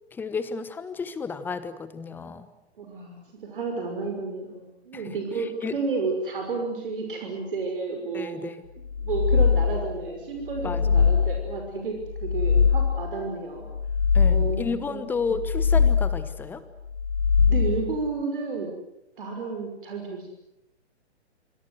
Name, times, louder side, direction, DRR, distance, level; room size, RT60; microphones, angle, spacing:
voice 1, 0.1-2.5 4.9-5.8 8.1-8.6 10.6-11.1 14.1-16.6, left 4 dB, 5° left, 14 dB, 1.0 m, -32 dB
voice 2, 2.8-8.4 9.0-13.7 14.2-14.6 14.9-15.0 17.5-18.7 19.2-20.3, right 4 dB, 50° right, 3 dB, 5.9 m, -31 dB
sound 1, 8.9-10.0 10.5-11.6 12.1-13.2 13.7-14.8 15.3-16.3 16.9-18.0, left 6 dB, 65° left, 1.9 m, -22 dB
26.0 x 26.0 x 8.0 m, 0.88 s
figure-of-eight pair, 125°, 34 cm